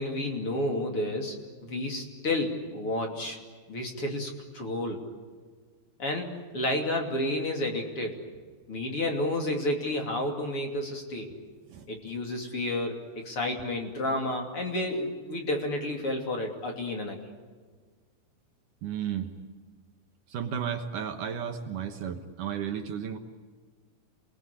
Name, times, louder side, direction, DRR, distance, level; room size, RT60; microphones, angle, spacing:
voice 1, 0.0-1.4 1.6-3.4 3.7-5.0 6.0-8.2 8.7-11.3 11.9-17.2, left 1 dB, 40° left, 2 dB, 3.4 m, -31 dB
voice 2, 18.8-19.3 20.3-23.2, right 8 dB, 65° right, 6 dB, 2.5 m, -33 dB
28.0 x 20.5 x 10.0 m, 1.5 s
omnidirectional pair, 4.4 m